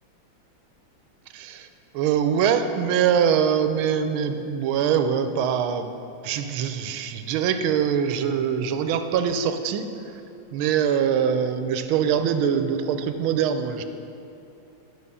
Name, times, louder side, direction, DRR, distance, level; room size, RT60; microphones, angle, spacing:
voice 1, 1.3-1.7 1.9-5.9 6.2-9.9 10.5-13.8, right 8 dB, 85° right, 9 dB, 1.5 m, -23 dB
10.5 x 6.4 x 5.5 m, 2.8 s
omnidirectional pair, 2.2 m